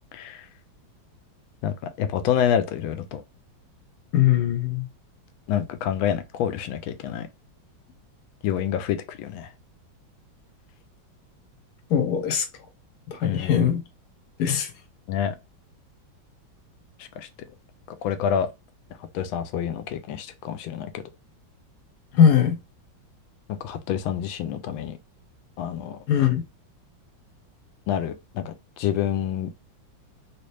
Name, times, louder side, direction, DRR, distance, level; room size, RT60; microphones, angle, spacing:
voice 1, 0.1-0.5 1.6-3.2 5.5-7.3 8.4-9.5 13.2-13.7 15.1-15.4 17.0-17.3 17.9-18.5 19.1-21.0 23.6-25.0 25.6-26.0 27.9-29.5, left 9 dB, 90° left, 1.3 m, -27 dB
voice 2, 4.1-4.9 11.9-12.5 13.1-13.8 14.4-14.7 22.1-22.6 26.1-26.4, left 8 dB, 65° left, 1.2 m, -20 dB
3.1 x 2.8 x 3.2 m
omnidirectional pair, 2.1 m